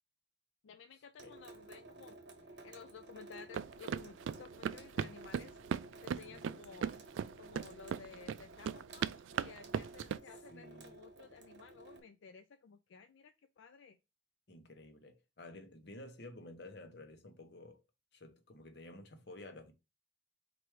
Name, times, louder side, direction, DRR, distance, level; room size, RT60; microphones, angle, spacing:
voice 1, 0.6-5.6 6.0-7.0 7.4-14.0, left 6 dB, 80° left, 0.4 m, -55 dB
Water tap faucet / Sink (filling or washing) / Drip, 1.2-12.0, right 2 dB, 65° right, 1.1 m, -54 dB
sound 1, 3.5-10.2, right 7 dB, 85° right, 0.3 m, -38 dB
voice 2, 10.5-10.9 14.5-17.8 18.1-19.7, left 2 dB, 60° left, 0.9 m, -52 dB
4.5 x 2.6 x 4.6 m
head